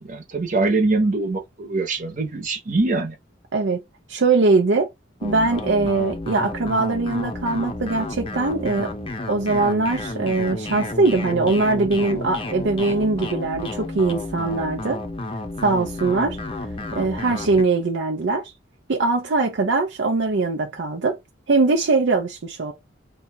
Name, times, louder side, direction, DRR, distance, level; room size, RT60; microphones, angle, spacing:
voice 1, 0.0-3.1, right 3 dB, 45° right, 1.0 m, -23 dB
voice 2, 3.5-3.8 4.1-4.9 5.2-8.9 9.3-15.0 15.6-16.4 16.9-18.4 18.9-21.2 21.5-22.7, right 3 dB, 70° right, 0.6 m, -21 dB
sound 1, 5.2-17.6, left 2 dB, 30° left, 0.6 m, -31 dB
2.8 x 2.3 x 4.2 m
head